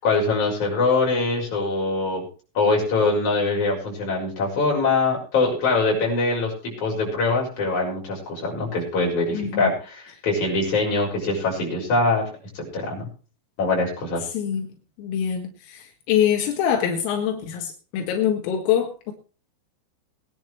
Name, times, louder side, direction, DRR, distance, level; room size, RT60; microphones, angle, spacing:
voice 1, 0.0-2.2 2.5-12.2 12.5-13.1 13.6-14.2, left 3 dB, 35° left, -2 dB, 7.4 m, -23 dB
voice 2, 9.3-9.7 14.3-14.7 15.0-19.1, left 9 dB, 85° left, 2 dB, 4.3 m, -24 dB
22.0 x 10.5 x 3.2 m, 0.37 s
omnidirectional pair, 5.8 m